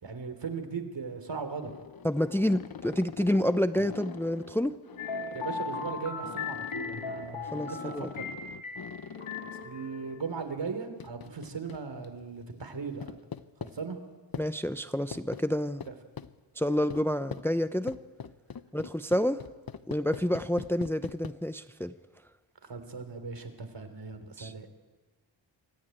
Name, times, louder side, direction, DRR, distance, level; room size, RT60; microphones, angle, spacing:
voice 1, 0.0-1.7 5.3-8.3 9.4-13.1 13.6-14.0 15.9-16.0 22.7-24.7, right 5 dB, 65° right, 8 dB, 3.3 m, -38 dB
sound 1, 1.6-9.7 11.0-12.1 13.0-13.7 14.3-14.5 15.1-15.4 15.8-16.3 16.9-17.0 17.3-17.5 17.9-21.3, left 7 dB, 50° left, 1.0 m, -43 dB
voice 2, 2.0-4.7 7.5-8.1 14.4-15.9 16.6-17.9 18.7-19.4 19.9-21.9 24.4-24.5, left 1 dB, 5° left, 11 dB, 0.7 m, -28 dB
sound 2, 5.0-10.3, left 4 dB, 85° left, 3.3 m, -38 dB
25.0 x 13.5 x 9.0 m, 1.3 s
cardioid pair, 65°, 47 cm